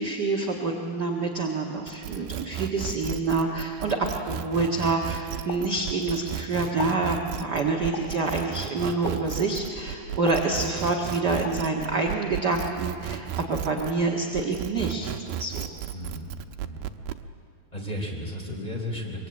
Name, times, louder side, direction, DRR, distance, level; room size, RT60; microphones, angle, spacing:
voice 1, 0.0-15.1 15.4-15.7, right 3 dB, 40° right, 1 dB, 1.5 m, -27 dB
sound 1, 1.9-14.0 14.4-17.2, right 10 dB, 85° right, 2.7 m, -34 dB
Explosion, 5.5-6.4 6.7-7.1 7.9-8.3 9.1-9.4 10.3-11.0 11.5-11.7, left 7 dB, 75° left, 3.1 m, -39 dB
voice 2, 15.9-16.3 16.6-16.9 17.7-19.3, left 1 dB, 10° left, 0 dB, 3.4 m, -34 dB
24.5 x 23.0 x 8.9 m, 2.3 s
omnidirectional pair, 4.3 m